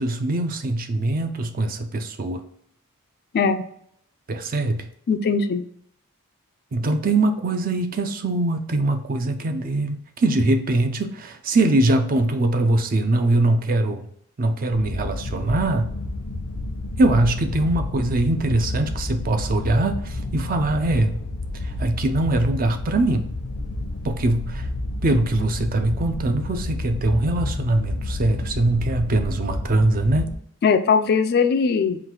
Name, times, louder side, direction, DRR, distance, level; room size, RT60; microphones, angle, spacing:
voice 1, 0.0-2.4 4.3-4.9 6.7-14.1 14.4-15.9 17.0-21.1 21.6-23.3 24.0-24.7 25.0-30.4, right 2 dB, 40° right, 8 dB, 0.4 m, -22 dB
voice 2, 5.1-5.6 30.6-32.0, left 5 dB, 45° left, 10 dB, 0.3 m, -20 dB
sound 1, 14.7-30.4, left 2 dB, 80° left, 0.6 m, -30 dB
3.8 x 2.4 x 4.3 m, 0.69 s
head